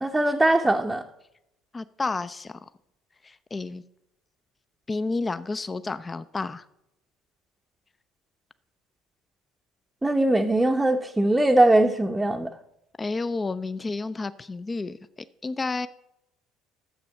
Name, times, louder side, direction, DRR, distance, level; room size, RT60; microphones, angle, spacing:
voice 1, 0.0-1.0 10.0-12.5, right 1 dB, 10° right, 1 dB, 0.7 m, -21 dB
voice 2, 1.7-2.5 3.2-3.8 4.9-6.6 13.0-15.0 15.4-15.9, left 3 dB, 25° left, 14 dB, 0.5 m, -30 dB
11.0 x 7.7 x 5.5 m, 0.82 s
figure-of-eight pair, 60°, 0 cm